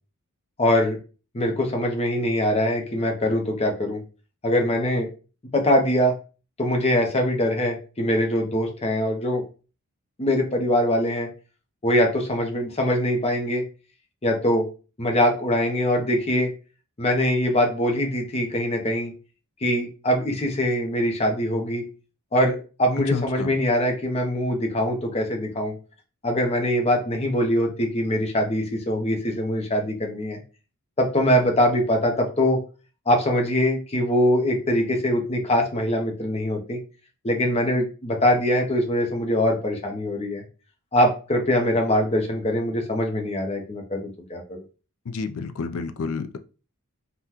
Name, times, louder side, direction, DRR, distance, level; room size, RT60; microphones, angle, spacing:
voice 1, 0.6-1.0 1.3-4.0 4.4-5.1 5.5-6.1 6.6-9.4 10.2-11.3 11.8-13.6 14.2-14.7 15.0-16.5 17.0-19.1 19.6-21.8 22.3-25.7 26.2-30.4 31.0-32.6 33.1-36.8 37.2-40.4 40.9-44.6, left 1 dB, 30° left, 2 dB, 0.6 m, -23 dB
voice 2, 23.1-23.5 45.1-46.4, left 4 dB, 65° left, 9 dB, 0.4 m, -30 dB
3.6 x 2.2 x 2.8 m, 0.35 s
head